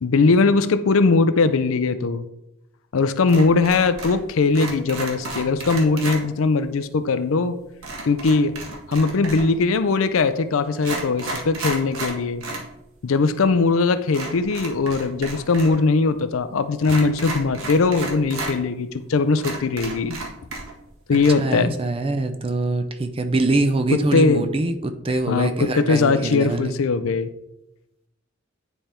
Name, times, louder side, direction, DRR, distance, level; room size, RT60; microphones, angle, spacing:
voice 1, 0.0-2.2 2.9-7.6 8.0-8.6 8.9-12.4 13.0-20.2 21.1-21.8 23.9-24.5 25.3-27.3, left 4 dB, 75° left, 12 dB, 0.5 m, -20 dB
sound 1, 3.3-4.2 4.5-6.2 7.8-9.6 10.3-10.4 10.7-12.7 13.0-13.1 14.1-15.8 16.0-16.1 16.8-18.5 19.0-19.1 19.4-20.9 21.1-21.3, right 2 dB, 80° right, 1.6 m, -32 dB
voice 2, 21.1-26.7, right 2 dB, 25° right, 8 dB, 0.5 m, -24 dB
9.7 x 3.4 x 4.3 m, 0.88 s
head